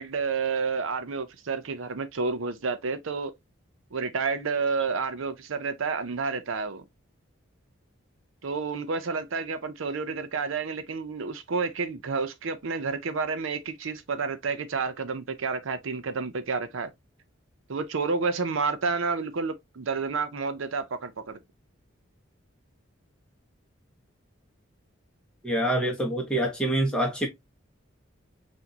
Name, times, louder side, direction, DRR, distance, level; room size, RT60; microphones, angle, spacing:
voice 1, 0.0-3.3 3.9-6.8 8.4-16.9 17.7-21.4, right 4 dB, 80° right, 0.6 m, -30 dB
voice 2, 25.4-27.3, right 1 dB, 5° left, 1.3 m, -26 dB
5.8 x 2.7 x 2.8 m
head